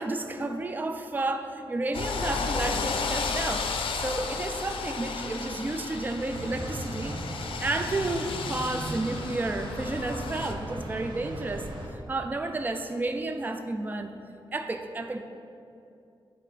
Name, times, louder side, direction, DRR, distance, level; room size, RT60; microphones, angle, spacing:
voice 1, 0.0-3.7 4.0-14.1 14.5-15.2, right 2 dB, 20° right, 6 dB, 0.4 m, -31 dB
sound 1, 1.9-10.5, left 5 dB, 85° left, 0.5 m, -33 dB
sound 2, 6.3-11.9, right 1 dB, 60° right, 1.3 m, -37 dB
9.2 x 4.3 x 4.9 m, 2.6 s
wide cardioid pair, 120°, 9 cm